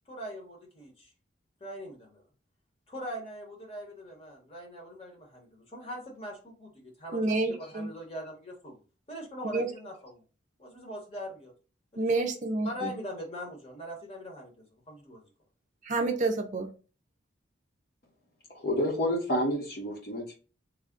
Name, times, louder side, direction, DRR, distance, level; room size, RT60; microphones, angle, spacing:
voice 1, 0.1-1.1 1.6-2.2 2.9-8.8 9.1-10.2 10.6-11.5 11.9-12.1 12.6-15.3, equal, 30° left, -1 dB, 1.1 m, -42 dB
voice 2, 7.1-7.9 9.5-9.7 12.0-12.9 15.9-16.7, right 3 dB, 40° right, 4 dB, 0.5 m, -28 dB
voice 3, 18.5-20.4, equal, 50° left, 1 dB, 1.0 m, -29 dB
3.4 x 2.2 x 3.7 m, 0.36 s
head